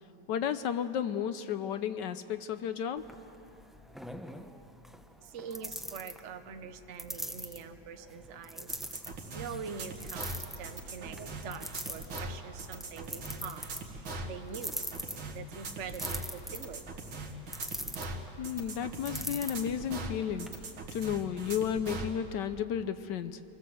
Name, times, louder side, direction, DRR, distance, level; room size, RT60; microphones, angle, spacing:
voice 1, 0.3-3.0 18.4-20.5 20.9-23.4, left 8 dB, 70° left, 11 dB, 1.3 m, -33 dB
sound 1, 3.0-20.5, equal, ahead, 0.5 m, -44 dB
voice 2, 5.2-8.7 9.3-14.8 15.3-17.0, right 6 dB, 45° right, 7 dB, 1.1 m, -44 dB
sound 2, 8.7-22.1, right 2 dB, 90° right, 2.6 m, -41 dB
26.0 x 19.5 x 7.8 m, 2.9 s
omnidirectional pair, 2.1 m